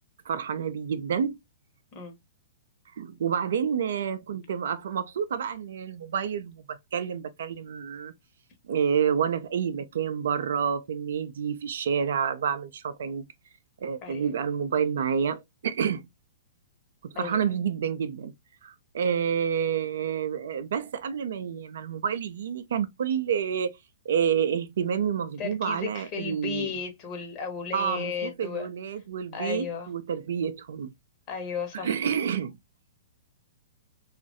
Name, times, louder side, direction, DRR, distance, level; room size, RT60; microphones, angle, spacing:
voice 1, 0.3-1.4 3.0-8.1 8.7-13.2 13.8-16.1 17.0-18.3 18.6-23.8 24.1-26.7 27.7-30.9 31.7-32.6, right 7 dB, 55° right, 0.3 m, -29 dB
voice 2, 25.4-28.7 29.3-29.9 31.3-32.1, left 6 dB, 30° left, 1.0 m, -34 dB
3.0 x 2.4 x 2.5 m
figure-of-eight pair, 110°, 0 cm